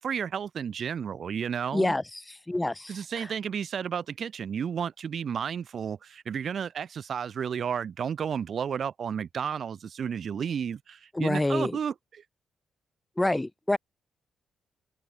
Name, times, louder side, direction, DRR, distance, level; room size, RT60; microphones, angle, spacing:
voice 1, 0.0-1.9 2.9-12.2, right 7 dB, 55° right, 6.1 m, -32 dB
voice 2, 1.7-2.2 2.5-3.3 11.1-11.8 13.2-13.8, left 1 dB, 15° left, 6.0 m, -27 dB
hypercardioid pair, 45°, 0 cm